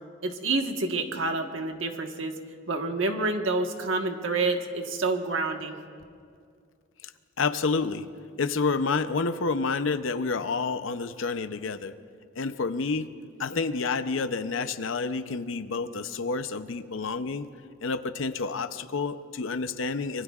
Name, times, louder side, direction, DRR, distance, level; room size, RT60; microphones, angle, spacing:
voice 1, 0.2-2.4 2.7-5.8, right 3 dB, 75° right, 4 dB, 1.3 m, -28 dB
voice 2, 7.4-8.1 8.4-11.9 12.4-13.1 13.4-17.5 17.8-20.2, left 4 dB, 75° left, 11 dB, 0.6 m, -29 dB
25.5 x 23.5 x 2.4 m, 2.2 s
head